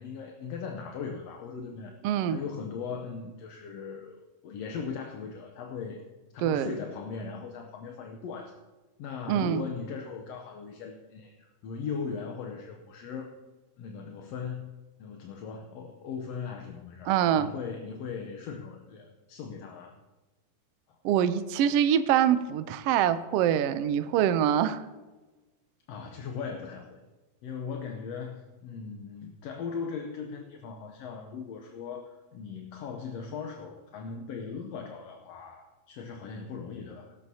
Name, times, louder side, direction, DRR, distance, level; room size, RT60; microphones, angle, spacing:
voice 1, 0.0-2.0 2.3-6.1 6.3-8.6 9.0-13.4 13.8-17.1 17.4-19.9 20.9-21.0 25.9-27.0 27.4-37.2, left 5 dB, 70° left, 3 dB, 1.8 m, -39 dB
voice 2, 2.0-2.4 6.4-6.7 9.3-9.7 17.1-17.5 21.0-24.8, right 10 dB, 85° right, 11 dB, 1.3 m, -24 dB
17.5 x 14.0 x 2.8 m, 1.2 s
omnidirectional pair, 3.5 m